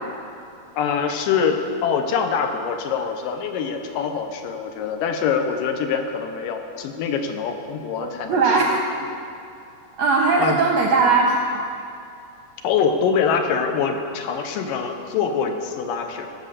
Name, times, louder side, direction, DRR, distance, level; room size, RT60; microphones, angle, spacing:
voice 1, 0.8-1.6 1.8-8.6 10.4-10.6 12.6-16.3, left 6 dB, 80° left, 5 dB, 2.5 m, -24 dB
voice 2, 8.0-8.8 10.0-11.6, right 4 dB, 75° right, 0 dB, 1.6 m, -19 dB
16.0 x 6.2 x 6.6 m, 2.6 s
omnidirectional pair, 4.0 m